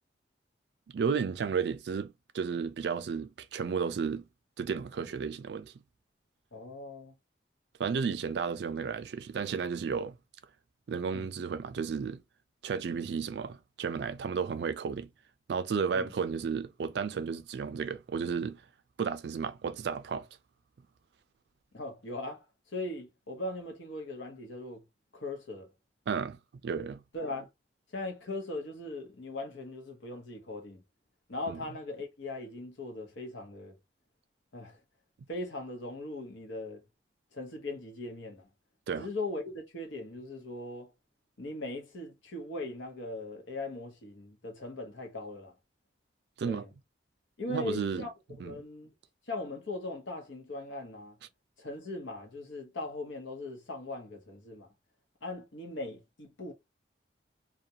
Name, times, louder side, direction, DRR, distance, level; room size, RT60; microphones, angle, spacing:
voice 1, 0.9-4.3 4.6-5.7 7.8-10.2 10.9-12.2 12.6-15.1 15.5-18.6 19.0-20.3 26.1-27.0 31.5-31.6 38.9-39.1 46.4-46.7 47.5-48.0 48.4-48.5, right 6 dB, 65° right, 0.3 m, -33 dB
voice 2, 6.5-7.1 11.1-11.3 15.9-16.1 21.7-24.8 25.1-25.7 27.1-27.5 27.9-30.8 31.3-33.7 34.5-34.8 35.3-36.8 37.3-38.5 39.0-40.9 41.4-45.5 46.4-46.7 47.4-48.1 48.4-48.9 49.3-51.2 51.6-54.7 55.2-56.5, left 2 dB, 90° left, 0.8 m, -39 dB
2.4 x 2.1 x 2.7 m
head